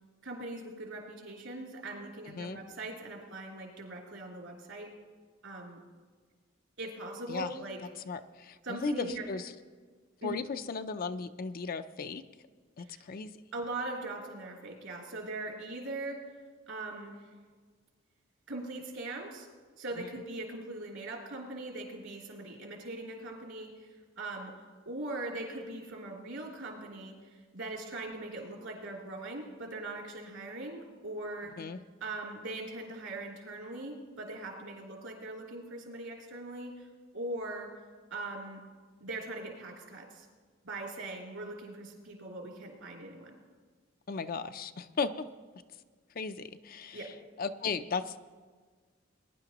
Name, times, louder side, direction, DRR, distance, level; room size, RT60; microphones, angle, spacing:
voice 1, 0.2-4.9 5.4-5.8 6.8-7.8 8.6-9.3 10.2-10.4 12.9-13.0 13.5-16.2 16.7-17.2 18.5-19.5 19.8-24.5 24.8-31.5 32.0-36.9 37.1-37.7 38.1-38.6 39.0-40.3 40.6-43.3 46.9-47.1, right 2 dB, 70° right, -1 dB, 3.2 m, -41 dB
voice 2, 2.3-2.6 7.3-7.6 8.1-9.5 10.2-12.2 12.8-13.3 31.6-31.8 44.1-45.3 46.1-47.1 47.4-48.2, left 4 dB, 45° left, 10 dB, 0.5 m, -36 dB
21.0 x 11.0 x 3.0 m, 1.5 s
head